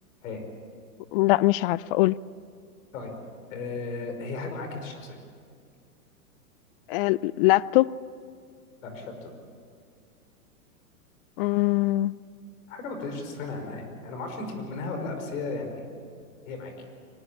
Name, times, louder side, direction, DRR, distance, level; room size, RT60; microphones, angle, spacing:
voice 1, 1.1-2.2 6.9-7.9 11.4-12.1, left 19 dB, 40° left, 0.5 m, -22 dB
voice 2, 3.5-5.2 8.8-9.3 12.7-15.9 16.5-16.7, left 3 dB, 60° left, 5.4 m, -35 dB
24.0 x 19.5 x 8.6 m
hypercardioid pair, 115°, 45 cm